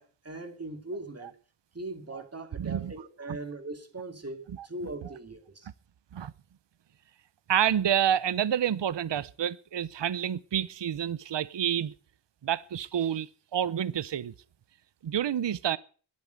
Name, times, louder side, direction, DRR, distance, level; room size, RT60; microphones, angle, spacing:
voice 1, 0.0-1.3 1.7-5.7, right 2 dB, 30° right, 2.6 m, -40 dB
voice 2, 2.6-2.9 6.1-6.3 7.5-11.9 12.4-14.3 15.0-15.8, right 9 dB, 60° right, 0.7 m, -28 dB
10.5 x 8.4 x 9.3 m
wide cardioid pair, 85°, 49 cm